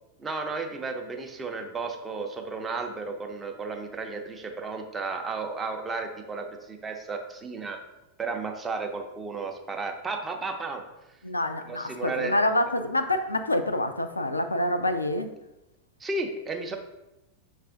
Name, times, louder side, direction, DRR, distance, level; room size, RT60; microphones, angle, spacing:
voice 1, 0.2-7.8 8.2-10.8 11.7-12.3 16.0-16.8, right 3 dB, 15° right, 3 dB, 0.6 m, -33 dB
voice 2, 11.2-15.3, left 1 dB, 80° left, 8 dB, 0.3 m, -27 dB
6.1 x 2.4 x 3.5 m, 0.94 s
figure-of-eight pair, 90°, 0 cm